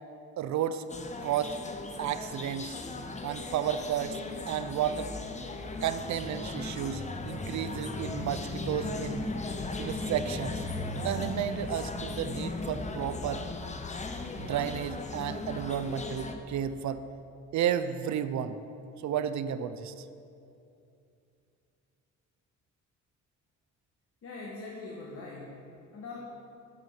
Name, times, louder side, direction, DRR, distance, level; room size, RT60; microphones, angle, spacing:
voice 1, 0.4-0.8 1.2-1.6 2.0-2.7 3.2-4.2 4.5-5.1 5.8-9.3 9.8-10.6 11.0-13.4 14.4-17.0 17.5-18.6 19.0-20.0, right 9 dB, 65° right, 11 dB, 0.5 m, -32 dB
sound 1, 0.9-16.4, left 3 dB, 20° left, 0.7 m, -37 dB
voice 2, 24.2-26.2, left 3 dB, 45° left, -3 dB, 1.5 m, -42 dB
9.4 x 6.4 x 7.1 m, 2.6 s
cardioid pair, 120°, 31 cm